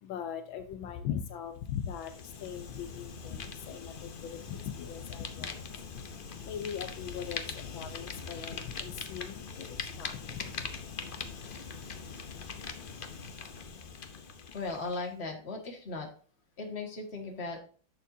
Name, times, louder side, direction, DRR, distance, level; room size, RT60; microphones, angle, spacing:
voice 1, 0.0-10.7, left 8 dB, 80° left, 9 dB, 1.6 m, -40 dB
Fire, 1.7-15.0, left 5 dB, 60° left, 0.5 m, -42 dB
voice 2, 14.5-16.1 16.6-17.6, left 3 dB, 35° left, 2 dB, 1.9 m, -37 dB
10.5 x 6.8 x 2.7 m, 0.40 s
omnidirectional pair, 2.1 m